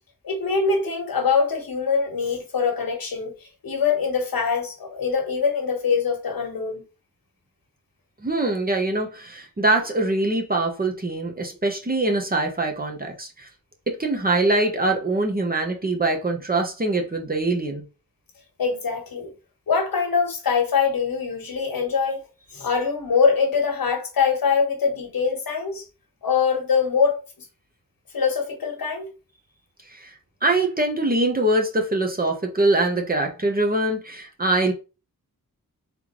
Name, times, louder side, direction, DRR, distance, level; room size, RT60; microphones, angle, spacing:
voice 1, 0.2-3.3 3.6-6.8 18.6-19.3 19.7-22.3 22.5-25.8 26.2-27.2 28.1-29.1, left 5 dB, 90° left, 1.2 m, -23 dB
voice 2, 8.2-13.5 14.0-17.8 29.9-30.1 30.4-34.7, right 2 dB, 25° right, 0.9 m, -23 dB
3.7 x 3.5 x 3.0 m
wide cardioid pair, 105°, 34 cm